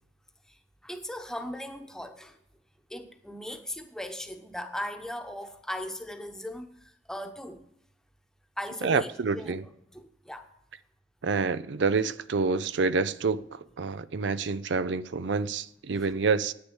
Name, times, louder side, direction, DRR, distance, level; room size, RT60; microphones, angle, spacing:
voice 1, 0.8-2.4 2.9-7.7 8.6-9.5 9.9-10.5 16.0-16.1, left 1 dB, 5° left, 1.0 m, -38 dB
voice 2, 8.8-9.6 11.2-16.5, right 4 dB, 75° right, 0.5 m, -28 dB
10.5 x 9.5 x 8.0 m
head